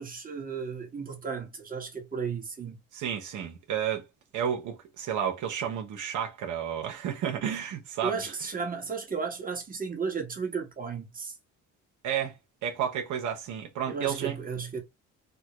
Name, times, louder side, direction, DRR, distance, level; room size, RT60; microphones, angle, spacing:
voice 1, 0.0-2.8 8.0-11.4 13.9-14.8, right 5 dB, 30° right, 1.3 m, -34 dB
voice 2, 2.9-4.1 4.3-8.3 12.0-14.4, right 9 dB, 80° right, 0.9 m, -31 dB
3.5 x 2.2 x 2.9 m
cardioid pair, 90°, 30 cm